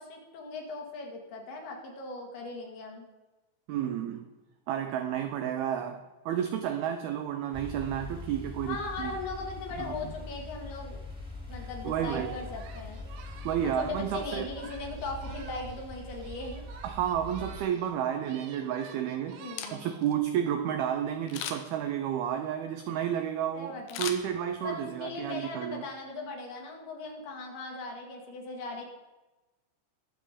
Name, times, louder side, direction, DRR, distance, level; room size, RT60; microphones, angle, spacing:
voice 1, 0.0-3.1 8.7-11.0 11.5-13.0 13.6-16.6 19.4-19.9 23.5-24.0 24.6-28.9, left 3 dB, 60° left, 1 dB, 3.7 m, -39 dB
voice 2, 3.7-4.3 4.7-9.1 9.8-10.1 11.6-12.3 13.5-14.5 16.8-19.4 19.7-25.8, right 9 dB, 90° right, 7 dB, 2.2 m, -31 dB
sound 1, 7.5-17.6, left 2 dB, ahead, 1.9 m, -42 dB
Singing, 12.1-15.9 16.2-17.9 18.2-20.1, right 7 dB, 70° right, 2.8 m, -49 dB
Camera, 19.4-20.1 21.3-21.8 23.9-24.8 25.2-25.3, left 9 dB, 80° left, 3.4 m, -38 dB
21.5 x 7.4 x 5.1 m, 1.1 s
omnidirectional pair, 5.4 m